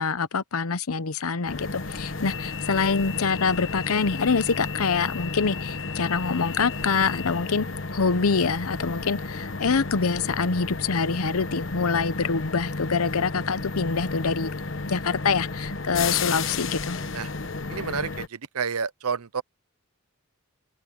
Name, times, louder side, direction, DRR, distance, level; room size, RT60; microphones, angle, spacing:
voice 1, 0.0-7.7 7.9-14.5 14.9-17.0, left 5 dB, 80° left, 0.8 m, -25 dB
sound 1, 1.5-18.3, left 4 dB, 55° left, 1.2 m, -32 dB
voice 2, 17.7-19.4, right 6 dB, 90° right, 0.8 m, -30 dB
open air
head